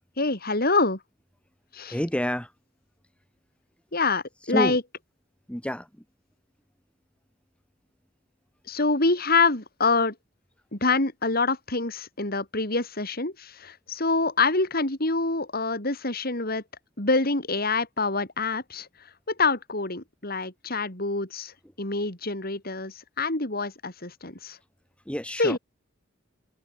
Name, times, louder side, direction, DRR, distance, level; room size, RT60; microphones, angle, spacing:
voice 1, 0.2-1.0 1.7-1.9 3.9-4.8 8.7-10.1 10.7-16.6 17.0-18.9 19.3-24.6 25.4-25.6, left 3 dB, 50° left, 4.9 m, -26 dB
voice 2, 1.9-2.5 4.5-4.8 5.5-5.9 25.1-25.6, equal, 5° left, 2.6 m, -28 dB
head